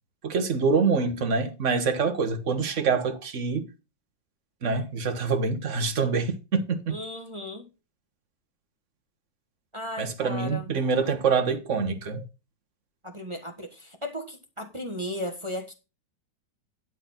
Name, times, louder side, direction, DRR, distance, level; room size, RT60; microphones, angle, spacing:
voice 1, 0.2-3.7 4.6-7.0 10.0-12.3, right 5 dB, 45° right, 1.5 m, -25 dB
voice 2, 6.9-7.7 9.7-10.7 13.0-15.7, left 1 dB, 20° right, 1.1 m, -35 dB
11.5 x 4.3 x 5.8 m
omnidirectional pair, 1.9 m